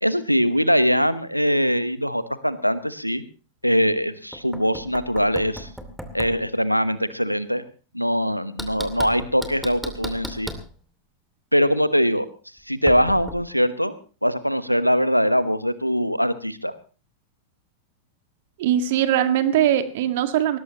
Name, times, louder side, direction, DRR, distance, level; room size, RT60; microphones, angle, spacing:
voice 1, 0.0-3.2 3.6-5.7 6.1-7.6 7.9-10.5 11.5-12.3 12.7-13.9 14.2-16.7, equal, 90° left, 14 dB, 1.1 m, -22 dB
Knock, 4.3-6.4 8.6-10.7 12.9-13.4, equal, ahead, 2.5 m, -35 dB
voice 2, 18.6-20.6, right 10 dB, 55° right, 9 dB, 1.9 m, -21 dB
20.5 x 18.5 x 3.0 m, 0.37 s
figure-of-eight pair, 90°, 0 cm